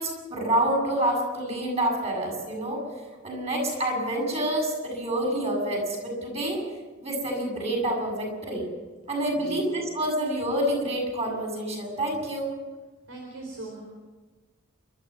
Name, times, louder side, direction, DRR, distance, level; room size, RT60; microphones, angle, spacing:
voice 1, 0.0-2.8 3.2-6.6 7.0-8.7 9.1-12.6, right 1 dB, 30° right, 1 dB, 7.3 m, -27 dB
voice 2, 13.1-13.8, right 3 dB, 80° right, 0 dB, 4.2 m, -39 dB
28.5 x 13.0 x 7.6 m, 1.3 s
head